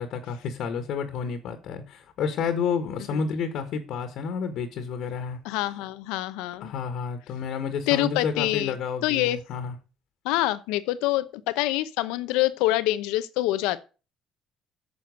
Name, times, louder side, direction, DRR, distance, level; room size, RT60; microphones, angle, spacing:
voice 1, 0.0-5.4 6.6-9.7, left 6 dB, 70° left, 1.6 m, -30 dB
voice 2, 5.4-6.7 7.9-8.7 9.0-9.4 10.2-13.8, left 16 dB, 90° left, 0.8 m, -26 dB
9.6 x 6.4 x 6.5 m
supercardioid pair, 85°, 0 cm